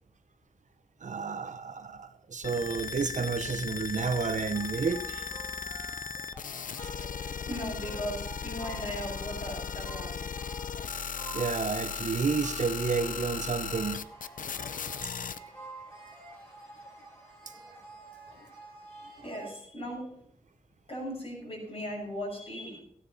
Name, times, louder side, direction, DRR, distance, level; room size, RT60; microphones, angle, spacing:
voice 1, 1.0-5.3 11.3-14.0, right 5 dB, 60° right, 9 dB, 0.9 m, -31 dB
sound 1, 2.4-15.4, left 6 dB, 70° left, 0.6 m, -37 dB
sound 2, 4.5-19.5, right 2 dB, 10° left, 5.2 m, -49 dB
voice 2, 7.3-10.2 18.3-18.4 19.2-20.2 20.9-22.8, equal, 40° left, -1 dB, 6.4 m, -38 dB
15.5 x 9.8 x 4.1 m, 0.67 s
wide cardioid pair, 120°, 14 cm